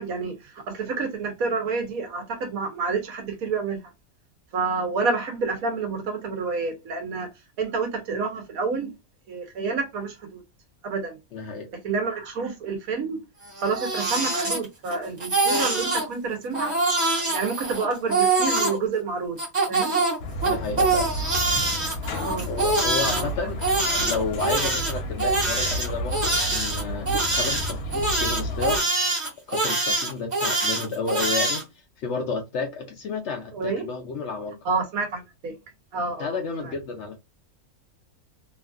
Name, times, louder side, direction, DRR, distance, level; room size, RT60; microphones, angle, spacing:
voice 1, 0.0-3.8 4.5-7.3 7.6-8.9 9.3-10.4 10.8-11.2 11.8-13.2 13.6-16.8 17.3-19.4 19.7-20.0 21.6-21.8 22.2-22.5 23.0-23.3 33.5-33.8 34.6-35.5 35.9-36.4, right 4 dB, 75° right, 1.3 m, -28 dB
voice 2, 11.3-11.7 20.4-21.1 22.5-23.6 24.0-28.8 29.5-31.6 32.0-34.6 36.2-37.2, left 4 dB, 65° left, 0.7 m, -31 dB
Crying sobbing, 13.5-14.9 15.2-16.1 16.5-18.8 19.4-23.2 23.6-31.6, right 3 dB, 30° right, 1.1 m, -24 dB
sound 1, 20.2-28.8, equal, 80° left, 1.2 m, -32 dB
3.0 x 2.5 x 2.4 m
omnidirectional pair, 1.5 m